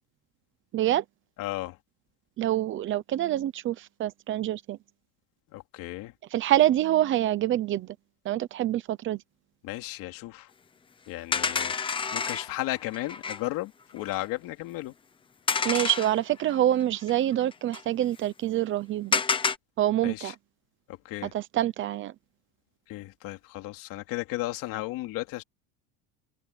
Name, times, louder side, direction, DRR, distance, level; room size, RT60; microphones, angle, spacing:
voice 1, 0.7-1.0 2.4-4.8 6.3-8.0 8.2-9.2 15.6-19.2 19.8-20.3 21.2-22.1, right 13 dB, 25° right, 0.9 m, -26 dB
voice 2, 1.4-1.8 5.5-6.1 9.6-10.5 11.1-11.7 12.1-14.9 20.0-20.3 20.9-21.3 22.9-25.4, left 17 dB, 45° left, 3.0 m, -34 dB
sound 1, 11.3-13.5 14.0-14.3 15.5-16.6 16.8-16.9 17.1-17.8 19.1-19.6, left 5 dB, 10° left, 0.7 m, -29 dB
open air
cardioid pair, 180°, 45 cm